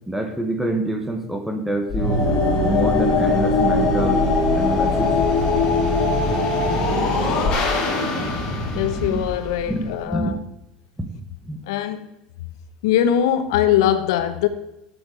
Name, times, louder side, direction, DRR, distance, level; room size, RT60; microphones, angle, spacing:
voice 1, 0.1-2.2 2.6-4.3 4.6-5.1 8.4-9.2 9.7-10.4 11.0-11.1 11.5-11.6, right 1 dB, 5° right, 1.1 m, -26 dB
sound 1, 1.9-10.0, left 3 dB, 30° left, 3.5 m, -21 dB
voice 2, 8.8-10.4 11.7-12.1 12.8-14.5, left 10 dB, 85° left, 1.0 m, -21 dB
8.7 x 8.1 x 5.0 m
supercardioid pair, 155°, 2 cm